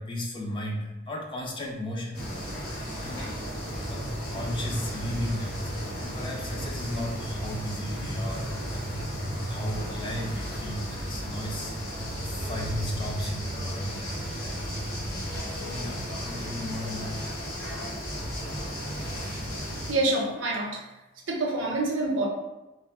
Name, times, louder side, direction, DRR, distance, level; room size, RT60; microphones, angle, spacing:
voice 1, 0.0-2.6 3.0-3.4 3.9-15.1 15.5-17.3, left 1 dB, 25° left, 0 dB, 0.3 m, -36 dB
sound 1, 2.1-19.9, equal, 50° left, 1.0 m, -34 dB
voice 2, 19.9-20.8 21.3-22.3, right 2 dB, 65° right, -1 dB, 0.6 m, -26 dB
2.3 x 2.1 x 3.4 m, 1.0 s
head